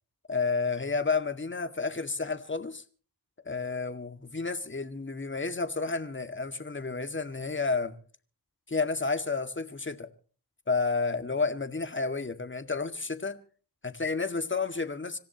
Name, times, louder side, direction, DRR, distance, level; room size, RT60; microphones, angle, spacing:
voice 1, 0.3-2.8 3.4-8.0 8.7-10.1 10.7-13.4 13.8-15.2, left 4 dB, 30° left, 2.0 m, -31 dB
26.5 x 15.0 x 2.9 m
cardioid pair, 65°, 38 cm